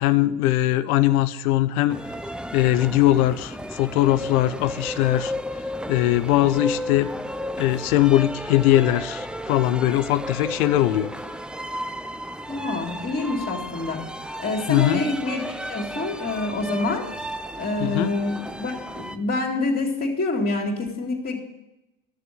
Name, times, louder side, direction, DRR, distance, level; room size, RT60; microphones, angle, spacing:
voice 1, 0.0-2.0 2.5-5.3 5.9-7.1 7.6-11.1 14.7-15.1 17.8-18.2, left 14 dB, 75° left, 14 dB, 0.8 m, -21 dB
sound 1, 1.9-19.2, equal, ahead, 0.7 m, -34 dB
voice 2, 12.5-14.1 14.4-15.4 15.7-17.1 17.6-21.4, left 2 dB, 30° left, -4 dB, 2.8 m, -26 dB
12.5 x 6.8 x 7.7 m, 0.94 s
hypercardioid pair, 75°, 44 cm